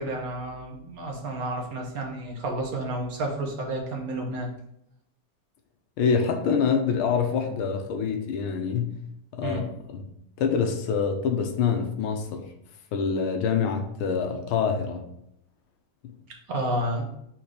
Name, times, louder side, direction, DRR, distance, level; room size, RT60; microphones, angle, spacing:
voice 1, 0.0-4.5 9.4-9.7 16.5-17.1, right 1 dB, 50° right, 1 dB, 1.3 m, -30 dB
voice 2, 6.0-9.0 9.3-10.1 10.4-12.5 12.9-15.0 16.0-16.1, left 6 dB, 80° left, 5 dB, 1.6 m, -26 dB
4.6 x 4.4 x 4.9 m, 0.77 s
omnidirectional pair, 2.4 m